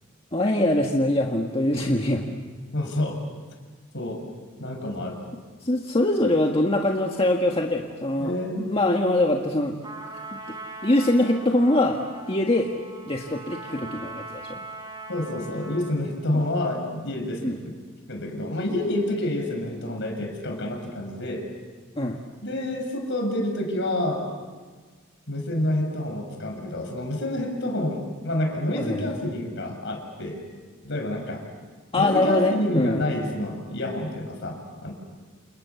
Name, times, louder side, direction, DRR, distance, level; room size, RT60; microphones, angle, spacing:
voice 1, 0.3-2.4 5.6-8.3 8.6-9.8 10.8-12.0 12.3-12.7 13.1-14.6 16.3-16.4 17.4-17.5 22.0-22.2 28.7-29.1 31.9-33.0, left 1 dB, 25° left, 1 dB, 1.7 m, -23 dB
voice 2, 2.7-3.2 3.9-4.2 4.6-5.2 8.2-8.7 15.1-17.7 18.1-21.4 22.4-24.3 25.3-30.4 30.8-31.4 32.0-34.9, left 1 dB, 60° left, 3 dB, 6.5 m, -28 dB
Trumpet, 9.8-16.1, right 2 dB, 20° right, 4.4 m, -40 dB
29.5 x 28.5 x 7.1 m, 1.4 s
head